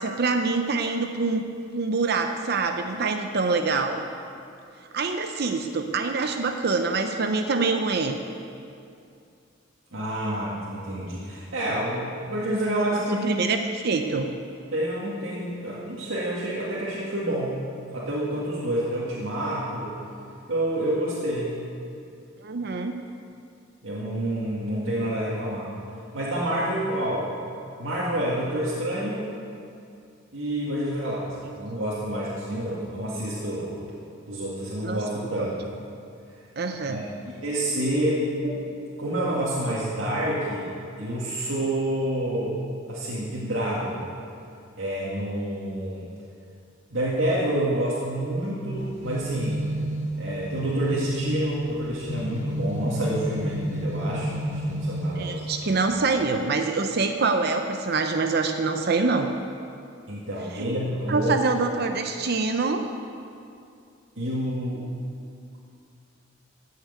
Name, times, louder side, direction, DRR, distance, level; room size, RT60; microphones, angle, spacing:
voice 1, 0.0-1.4 1.7-4.0 4.9-8.2 13.2-14.3 22.4-23.0 34.8-35.0 35.4-35.5 36.6-37.0 55.1-59.3 60.5-60.7 61.1-62.8, right 4 dB, 55° right, 6 dB, 0.6 m, -25 dB
voice 2, 9.9-13.3 14.7-17.6 17.9-20.0 20.5-21.6 23.8-25.7 26.1-27.3 27.8-29.3 30.3-31.3 31.6-33.8 34.3-35.6 36.8-37.0 37.4-38.6 39.0-40.7 41.0-44.0 44.8-46.0 46.9-49.6 50.2-55.8 60.1-61.3 64.2-64.8, right 1 dB, 80° right, -7 dB, 2.1 m, -28 dB
sound 1, 48.8-55.7, equal, 65° left, 2.3 m, -31 dB
14.5 x 6.7 x 8.2 m, 2.5 s
head